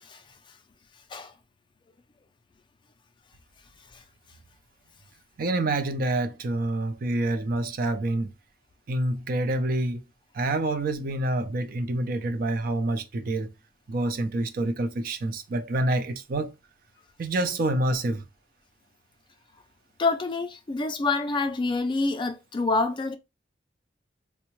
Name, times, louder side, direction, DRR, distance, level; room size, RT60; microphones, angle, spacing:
voice 1, 5.4-8.3 8.9-10.0 10.3-13.5 13.9-16.5 17.2-18.2, right 2 dB, 55° right, 0.4 m, -27 dB
voice 2, 20.0-23.2, left 3 dB, 25° left, 0.4 m, -27 dB
3.5 x 2.1 x 3.0 m
head